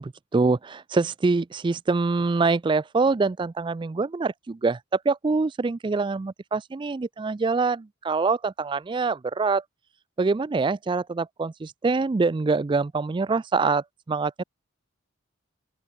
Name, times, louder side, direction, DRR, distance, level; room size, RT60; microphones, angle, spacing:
voice 1, 0.0-9.6 10.2-14.4, right 4 dB, 25° right, 0.3 m, -25 dB
open air
head